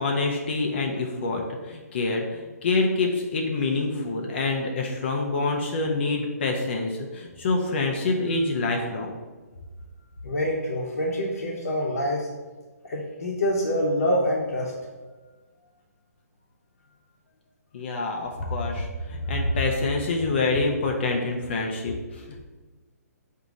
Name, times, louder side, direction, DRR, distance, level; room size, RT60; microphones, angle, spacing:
voice 1, 0.0-9.1 17.7-22.4, left 3 dB, 40° left, 1 dB, 0.5 m, -26 dB
voice 2, 10.2-12.3 12.8-14.7, equal, 65° left, -5 dB, 0.8 m, -26 dB
3.9 x 2.7 x 4.7 m, 1.3 s
hypercardioid pair, 160°, 9 cm